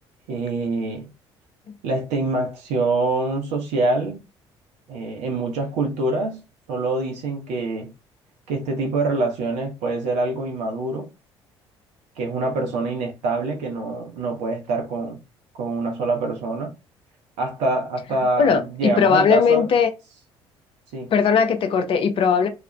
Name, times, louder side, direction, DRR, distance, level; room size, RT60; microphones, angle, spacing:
voice 1, 0.3-1.1 1.8-4.2 4.9-6.4 6.7-7.9 8.5-11.1 12.2-15.2 15.6-16.7 17.4-19.7 20.9-21.1, right 2 dB, 60° right, 0.6 m, -25 dB
voice 2, 18.4-19.9 21.1-22.5, left 6 dB, 40° left, 0.5 m, -18 dB
2.4 x 2.1 x 3.0 m
figure-of-eight pair, 50°, 14 cm